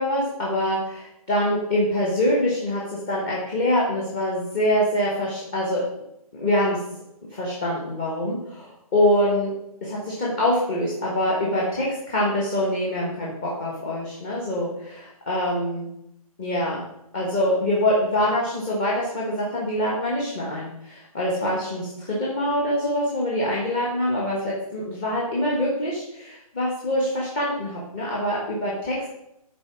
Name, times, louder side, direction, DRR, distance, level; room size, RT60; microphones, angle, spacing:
voice 1, 0.0-2.8 3.1-5.8 6.3-6.8 7.3-9.5 9.8-15.9 16.4-16.8 17.1-29.1, left 1 dB, 15° left, -5 dB, 1.3 m, -24 dB
11.5 x 4.1 x 6.1 m, 0.79 s
hypercardioid pair, 175°, 19 cm